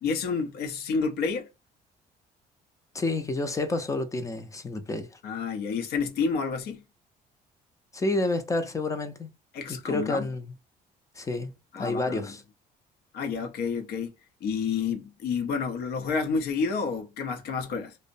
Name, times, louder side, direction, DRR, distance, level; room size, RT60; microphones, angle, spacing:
voice 1, 0.0-1.5 5.2-6.8 9.5-10.2 11.7-12.3 13.1-14.1 14.4-18.0, left 5 dB, 70° left, 0.6 m, -29 dB
voice 2, 2.9-5.1 7.9-9.3 9.7-10.5 11.2-12.4, left 2 dB, 20° left, 0.5 m, -29 dB
2.6 x 2.0 x 2.5 m
cardioid pair, 110°, 17 cm